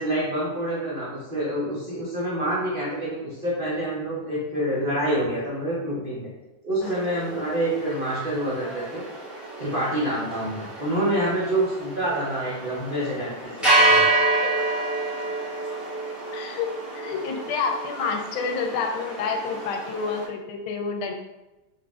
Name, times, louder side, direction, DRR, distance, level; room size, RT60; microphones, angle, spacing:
voice 1, 0.0-6.3 6.6-9.0 9.6-14.2, right 1 dB, 85° right, -8 dB, 0.4 m, -27 dB
sound 1, 6.8-20.3, right 2 dB, ahead, 0.6 m, -28 dB
voice 2, 16.3-21.1, left 5 dB, 90° left, 4 dB, 1.4 m, -29 dB
4.0 x 3.1 x 2.3 m, 1.0 s
omnidirectional pair, 2.2 m